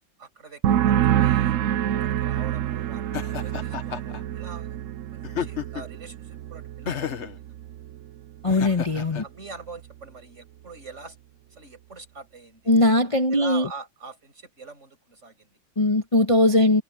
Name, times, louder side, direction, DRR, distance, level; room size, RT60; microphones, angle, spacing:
voice 1, 0.2-1.6 2.0-4.8 5.1-7.1 9.2-11.2 11.5-12.7 13.3-15.6, right 4 dB, 40° right, 6.2 m, -43 dB
sound 1, 0.6-8.1 8.4-8.9, right 11 dB, 65° right, 0.8 m, -27 dB
Laughter, 3.1-4.2 5.2-6.0 6.9-7.4 8.5-9.2, left 8 dB, 45° left, 1.3 m, -32 dB
voice 2, 8.4-9.2 12.7-13.7 15.8-16.8, left 2 dB, 20° left, 1.3 m, -20 dB
omnidirectional pair, 1.9 m